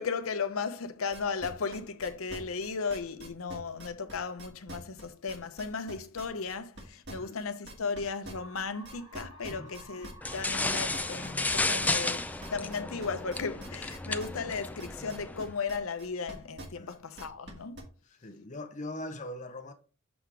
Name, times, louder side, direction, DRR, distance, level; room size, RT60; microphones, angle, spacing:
voice 1, 0.0-17.8, left 5 dB, 80° left, 0.8 m, -36 dB
sound 1, 1.1-8.0 8.2-17.8, right 1 dB, 55° right, 2.1 m, -45 dB
sound 2, 8.3-16.2, right 1 dB, 25° right, 1.6 m, -55 dB
voice 2, 9.5-9.8 16.8-17.0 18.0-19.7, left 1 dB, 35° left, 0.8 m, -41 dB
sound 3, 10.2-15.5, left 2 dB, 5° left, 0.4 m, -33 dB
7.1 x 3.7 x 4.7 m
head